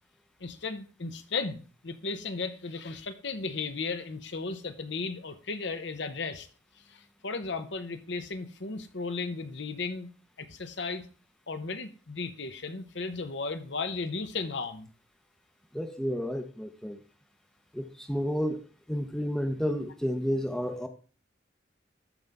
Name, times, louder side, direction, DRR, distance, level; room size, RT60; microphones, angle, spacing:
voice 1, 0.4-6.5 6.9-10.1 10.4-11.1 11.5-14.9, left 4 dB, 65° left, 9 dB, 0.9 m, -35 dB
voice 2, 15.7-17.0 17.7-18.6 18.9-20.9, equal, 5° left, 6 dB, 0.7 m, -31 dB
13.5 x 5.4 x 3.5 m, 0.37 s
head